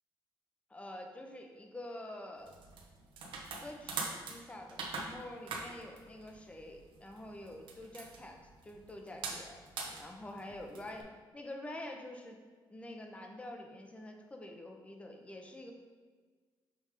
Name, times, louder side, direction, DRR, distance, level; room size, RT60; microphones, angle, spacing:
voice 1, 0.7-2.5 3.6-9.6 10.0-12.4 12.7-15.7, left 1 dB, 15° left, 3 dB, 0.8 m, -47 dB
sound 1, 2.4-11.0, right 4 dB, 75° right, 1.0 m, -43 dB
6.7 x 3.5 x 4.8 m, 1.5 s
cardioid pair, 125°, 9 cm